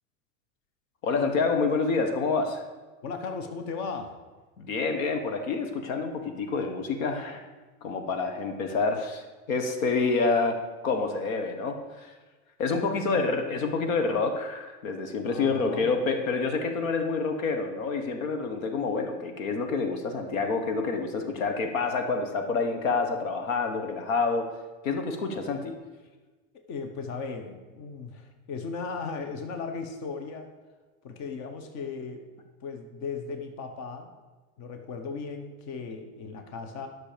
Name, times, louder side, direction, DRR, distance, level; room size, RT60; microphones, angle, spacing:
voice 1, 1.0-2.6 4.6-7.5 7.8-12.1 12.6-24.5 24.8-25.7, left 4 dB, 90° left, 6 dB, 1.4 m, -28 dB
voice 2, 3.0-4.1 13.0-13.3 15.2-15.9 26.7-30.5 31.0-32.2 32.6-34.1 34.6-36.9, left 4 dB, 45° left, 6 dB, 1.1 m, -36 dB
12.0 x 6.3 x 5.1 m, 1.3 s
supercardioid pair, 135°, 39 cm